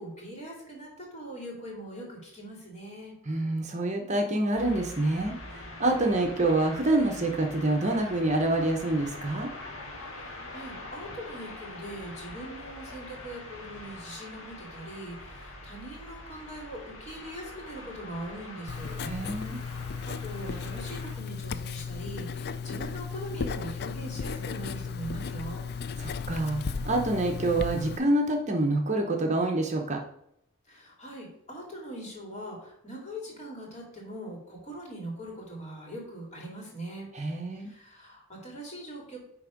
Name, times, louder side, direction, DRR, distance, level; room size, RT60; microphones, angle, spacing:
voice 1, 0.0-3.1 10.0-19.0 19.5-25.6 30.7-37.1 37.5-39.2, right 1 dB, 35° left, -2 dB, 2.6 m, -41 dB
voice 2, 3.3-9.5 19.0-19.6 26.0-30.0 37.1-37.7, right 2 dB, 35° right, 3 dB, 0.9 m, -27 dB
sound 1, 4.5-21.1, left 2 dB, 70° left, 1.7 m, -44 dB
Writing, 18.7-28.0, left 5 dB, 50° left, 0.4 m, -35 dB
9.8 x 3.5 x 5.1 m, 0.75 s
head